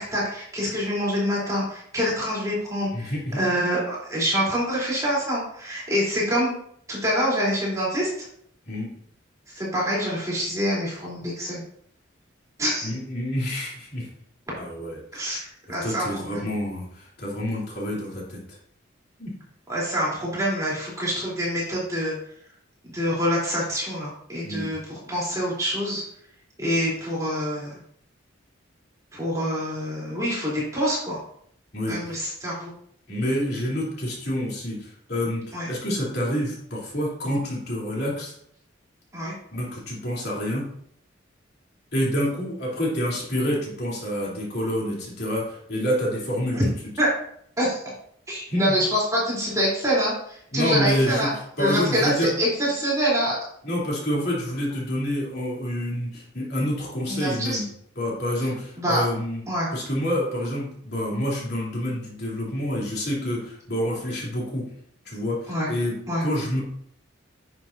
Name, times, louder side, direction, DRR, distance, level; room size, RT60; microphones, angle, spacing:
voice 1, 0.0-6.5 6.9-8.3 9.5-11.6 12.6-12.9 15.1-16.4 19.7-22.2 22.9-26.0 26.6-27.8 29.1-31.2 31.9-32.7 35.5-35.7 39.1-39.3 46.5-46.7 47.0-47.1 47.6-47.8 48.3-51.3 51.6-53.4 57.1-57.6 58.8-59.0 59.5-59.7 65.5-65.7 66.1-66.2, equal, 15° right, -6 dB, 3.3 m, -26 dB
voice 2, 2.9-3.4 8.6-8.9 12.8-14.1 14.6-15.3 15.8-18.6 19.2-19.3 24.4-24.7 31.7-32.2 33.1-38.4 39.5-40.6 41.9-46.7 48.5-48.8 50.5-51.3 51.6-52.3 53.6-57.7 57.9-59.4 59.7-64.6 65.0-65.9 66.2-66.6, equal, 55° left, -5 dB, 3.2 m, -28 dB
10.5 x 7.4 x 2.7 m, 0.67 s
head